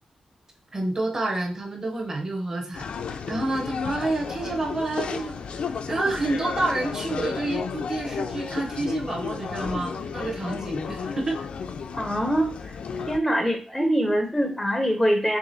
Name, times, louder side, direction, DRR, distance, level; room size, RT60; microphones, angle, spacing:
voice 1, 0.7-2.8 3.1-5.4 5.9-11.4, right 2 dB, 30° right, 2 dB, 0.8 m, -28 dB
sound 1, 2.7-13.2, left 6 dB, 65° left, 0.4 m, -33 dB
voice 2, 11.9-12.5 13.1-15.4, equal, 5° left, 3 dB, 0.5 m, -23 dB
4.8 x 3.3 x 2.6 m, 0.41 s
wide cardioid pair, 165°, 2 cm